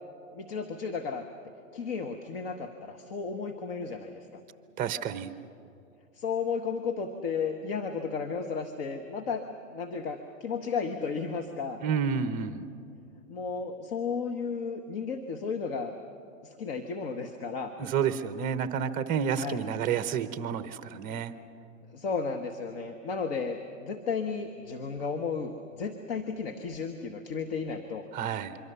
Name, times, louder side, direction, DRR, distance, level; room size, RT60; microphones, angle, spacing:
voice 1, 0.3-1.3 1.7-4.4 6.1-9.4 9.7-11.8 13.3-15.9 16.4-17.7 19.4-19.6 21.9-28.1, left 5 dB, 45° left, 5 dB, 1.4 m, -33 dB
voice 2, 4.8-5.3 11.8-12.6 17.8-21.3 28.1-28.6, right 7 dB, 20° right, 12 dB, 0.8 m, -30 dB
25.5 x 24.5 x 6.9 m, 2.5 s
hypercardioid pair, 135°, 40 cm